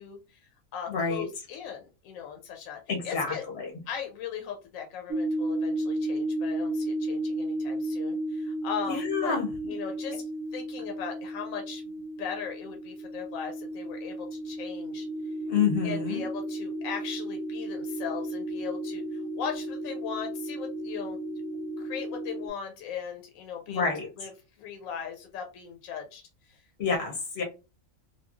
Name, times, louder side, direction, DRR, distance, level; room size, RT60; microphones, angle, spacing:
voice 1, 0.0-3.4 3.9-9.4 9.7-10.2 10.5-11.8 12.2-15.1 15.8-21.2 21.8-23.9 24.2-24.3 24.6-26.6, left 7 dB, 80° left, 1.0 m, -38 dB
voice 2, 0.9-1.3 2.9-3.7 8.9-9.5 15.5-16.2 23.7-24.1 26.8-27.4, left 6 dB, 55° left, 0.8 m, -28 dB
sound 1, 5.1-22.5, right 1 dB, 70° right, 0.9 m, -33 dB
3.0 x 2.3 x 2.3 m
omnidirectional pair, 1.4 m